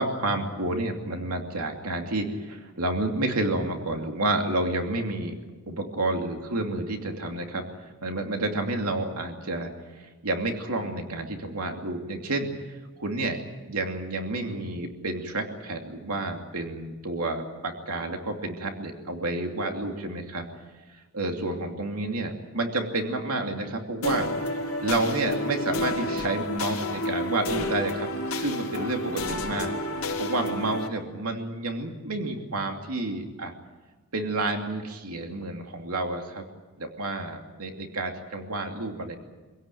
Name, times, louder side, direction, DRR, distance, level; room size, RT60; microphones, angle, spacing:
voice 1, 0.0-5.4 5.7-13.4 13.7-20.5 20.9-24.3 24.8-29.7 30.2-33.5 34.1-36.4 36.8-39.2, right 2 dB, 85° right, 3 dB, 2.7 m, -30 dB
sound 1, 24.0-30.9, left 1 dB, 65° left, 3.8 m, -30 dB
25.5 x 17.0 x 9.3 m, 1.3 s
head